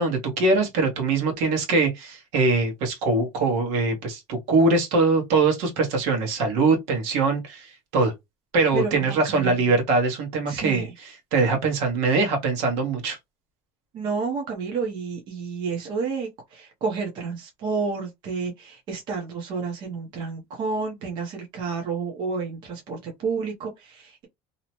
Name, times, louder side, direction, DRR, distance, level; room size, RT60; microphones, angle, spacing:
voice 1, 0.0-8.1 8.5-13.2, right 3 dB, 65° right, 1.1 m, -22 dB
voice 2, 8.7-9.6 10.5-10.9 13.9-24.2, right 5 dB, 40° right, 0.8 m, -30 dB
2.7 x 2.1 x 2.9 m
cardioid pair, 170°, 12 cm